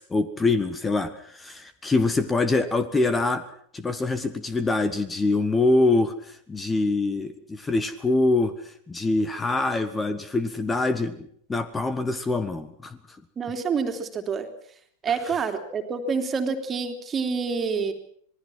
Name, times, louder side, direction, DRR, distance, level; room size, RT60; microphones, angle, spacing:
voice 1, 0.0-3.4 3.7-8.5 8.9-13.0 15.2-15.4, left 3 dB, 15° left, 13 dB, 1.5 m, -24 dB
voice 2, 13.4-14.5 15.0-17.9, right 5 dB, 20° right, 6 dB, 3.2 m, -27 dB
26.5 x 20.5 x 6.1 m, 0.62 s
figure-of-eight pair, 90°, 0 cm